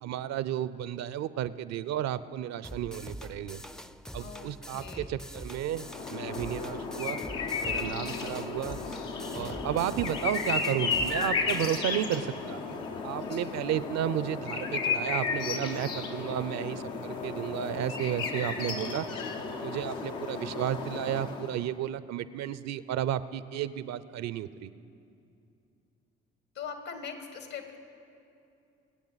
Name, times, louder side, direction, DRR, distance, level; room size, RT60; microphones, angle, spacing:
voice 1, 0.0-3.6 4.1-7.3 7.6-8.8 9.3-12.6 13.0-19.1 19.6-24.7, right 11 dB, 65° right, 16 dB, 0.6 m, -33 dB
sound 1, 2.6-11.8, equal, ahead, 0.4 m, -44 dB
voice 2, 4.1-5.1 7.9-8.2 9.3-9.7 13.2-13.6 17.3-17.4 18.4-18.6 26.5-27.8, left 6 dB, 70° left, 6 dB, 1.7 m, -43 dB
sound 2, 5.7-21.7, left 4 dB, 85° left, 1.0 m, -34 dB
24.5 x 8.6 x 4.0 m, 2.6 s
hypercardioid pair, 55°, 29 cm